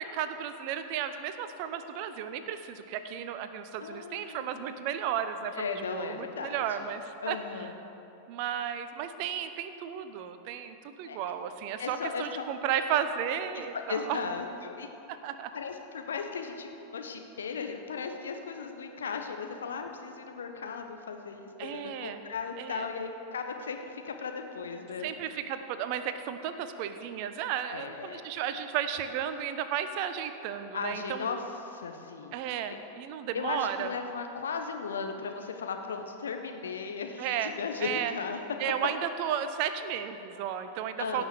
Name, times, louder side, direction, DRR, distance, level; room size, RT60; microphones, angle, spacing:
voice 1, 0.0-7.7 8.3-14.2 15.1-15.5 21.6-22.2 22.6-22.9 25.0-31.2 32.3-33.9 37.2-38.1 38.6-41.2, right 9 dB, 45° right, 10 dB, 0.7 m, -34 dB
voice 2, 3.8-4.6 5.5-6.9 7.2-7.7 11.0-11.2 11.8-12.4 13.5-14.9 15.5-25.1 27.7-28.2 30.7-32.4 33.3-38.4 41.0-41.2, left 5 dB, 65° left, 5 dB, 1.1 m, -36 dB
17.0 x 6.1 x 6.8 m, 2.9 s
figure-of-eight pair, 90°, 0 cm